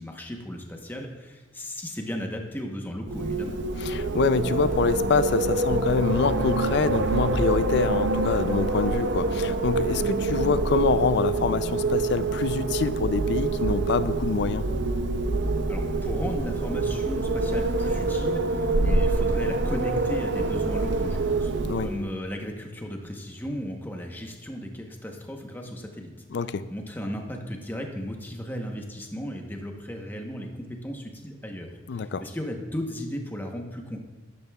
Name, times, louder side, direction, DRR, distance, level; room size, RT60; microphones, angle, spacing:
voice 1, 0.0-3.5 15.7-26.1 26.7-34.0, equal, 10° left, 2 dB, 0.9 m, -35 dB
Wind, 3.1-22.1, right 3 dB, 65° right, 0.6 m, -26 dB
voice 2, 3.8-14.6 21.6-21.9 26.3-26.6 31.9-32.2, left 5 dB, 60° left, 14 dB, 0.4 m, -26 dB
12.5 x 10.5 x 2.3 m, 1.2 s
head